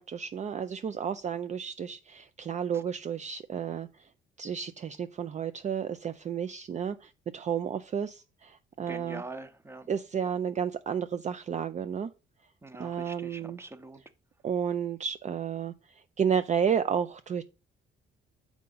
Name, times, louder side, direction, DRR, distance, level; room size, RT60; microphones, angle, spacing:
voice 1, 0.0-3.9 4.4-9.2 9.9-12.1 12.8-13.6 14.4-17.4, right 7 dB, 35° right, 0.4 m, -32 dB
voice 2, 8.9-9.9 12.6-14.0, right 2 dB, 10° right, 0.7 m, -43 dB
6.5 x 4.7 x 3.9 m
cardioid pair, 90°, 20 cm